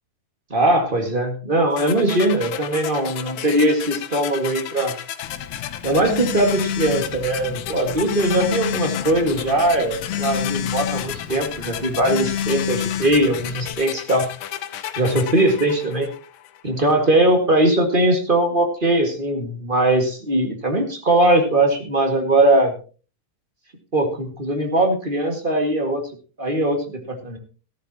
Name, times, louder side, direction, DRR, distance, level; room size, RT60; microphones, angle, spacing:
voice 1, 0.5-4.9 5.8-14.3 15.0-16.1 16.6-22.7 23.9-26.0 26.4-27.4, right 1 dB, 25° right, 4 dB, 1.2 m, -20 dB
sound 1, 1.8-16.7, left 11 dB, 70° left, 2.2 m, -33 dB
Telephone, 5.2-13.7, left 9 dB, 90° left, 2.9 m, -29 dB
15.5 x 13.5 x 2.9 m, 0.36 s
omnidirectional pair, 4.0 m